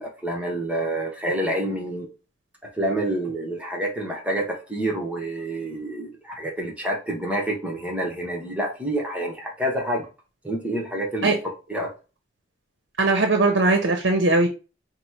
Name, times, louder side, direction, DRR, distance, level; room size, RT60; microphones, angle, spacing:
voice 1, 0.0-2.1 2.7-10.1 10.4-11.3 11.7-11.9, right 1 dB, 5° right, -1 dB, 0.9 m, -28 dB
voice 2, 13.0-14.5, right 2 dB, 70° right, 5 dB, 0.7 m, -19 dB
4.1 x 2.1 x 4.5 m, 0.32 s
head